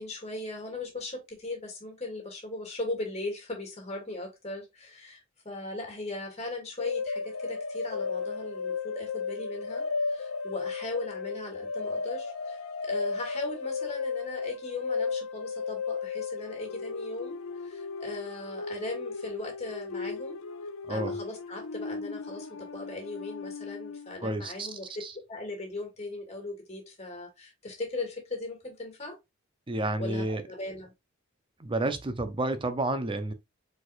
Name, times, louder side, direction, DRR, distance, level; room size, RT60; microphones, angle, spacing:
voice 1, 0.0-20.4 20.9-24.9 25.3-29.2 30.0-30.9, left 2 dB, 30° left, 1.9 m, -38 dB
sound 1, 6.8-24.2, left 4 dB, 80° left, 0.5 m, -35 dB
voice 2, 20.9-21.2 24.2-25.1 29.7-30.4 31.6-33.3, right 2 dB, 25° right, 0.6 m, -30 dB
4.8 x 4.1 x 2.5 m
head